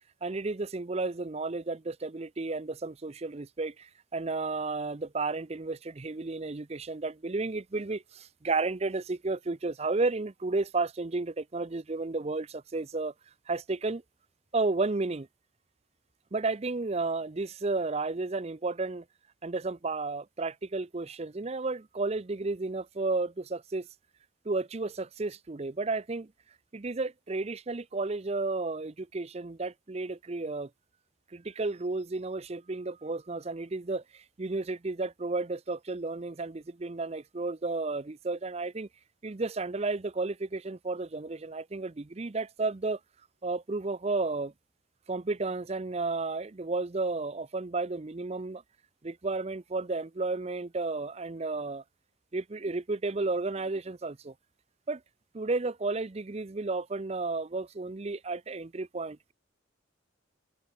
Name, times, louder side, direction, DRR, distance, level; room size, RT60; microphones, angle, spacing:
voice 1, 0.2-13.1 13.5-14.0 14.5-15.3 16.3-19.0 19.4-23.9 24.4-26.3 26.7-30.7 31.3-38.9 39.2-43.0 43.4-44.5 45.1-48.6 49.0-51.8 52.3-54.3 54.9-55.0 55.3-59.3, right 3 dB, 30° right, 0.5 m, -32 dB
head